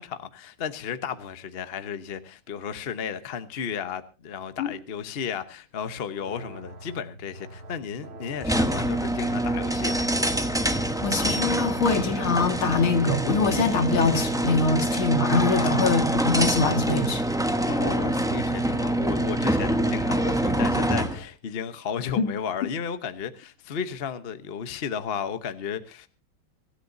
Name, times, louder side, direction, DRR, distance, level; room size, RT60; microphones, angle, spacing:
voice 1, 0.0-10.1 15.5-15.9 17.7-26.1, left 7 dB, 40° left, 0.8 m, -34 dB
sound 1, 6.2-21.3, right 2 dB, 75° right, 3.1 m, -43 dB
sound 2, 8.4-21.2, right 1 dB, 5° right, 0.5 m, -25 dB
voice 2, 11.0-17.2 22.2-22.3, left 4 dB, 70° left, 2.8 m, -23 dB
24.5 x 13.5 x 2.7 m
omnidirectional pair, 2.4 m